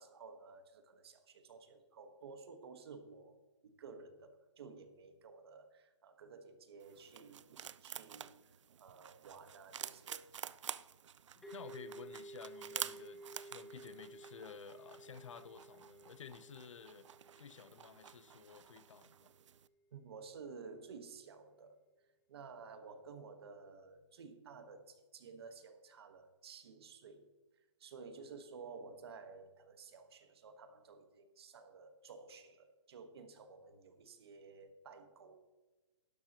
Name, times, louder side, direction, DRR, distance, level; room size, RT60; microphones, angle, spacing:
voice 1, 0.0-3.4 3.6-10.3 19.9-21.8 22.3-27.3 27.8-35.4, right 5 dB, 55° right, 1.4 m, -53 dB
sound 1, 6.8-19.7, right 9 dB, 70° right, 0.5 m, -49 dB
voice 2, 11.4-17.1 17.4-19.3, left 7 dB, 75° left, 0.7 m, -53 dB
sound 2, 11.4-19.0, right 2 dB, 5° left, 1.0 m, -54 dB
12.0 x 11.5 x 3.0 m
hypercardioid pair, 165°, 16 cm